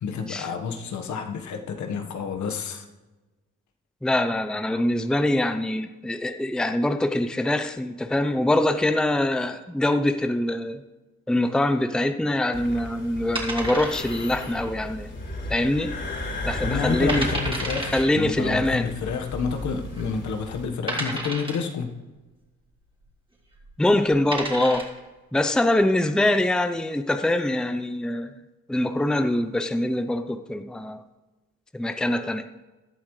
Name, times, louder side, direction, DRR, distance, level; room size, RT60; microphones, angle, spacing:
voice 1, 0.0-2.9 16.6-22.0, left 5 dB, 70° left, 5 dB, 1.4 m, -29 dB
voice 2, 4.0-10.8 11.3-15.1 15.5-15.9 16.5-17.3 17.9-18.9 23.8-24.9 25.3-28.3 28.7-31.0 31.7-32.4, left 1 dB, ahead, 8 dB, 0.6 m, -24 dB
sound 1, 12.5-20.6, left 1 dB, 40° left, 3.7 m, -34 dB
sound 2, 13.4-14.3 14.6-14.7 15.3-15.7 16.1-16.2 16.7-16.8 17.1-18.1 19.1-19.2 19.9-20.0 20.9-21.7 23.5-23.7 24.1-25.0, right 2 dB, 15° right, 3.3 m, -31 dB
16.5 x 11.5 x 3.3 m, 1.2 s
cardioid pair, 90°, 30 cm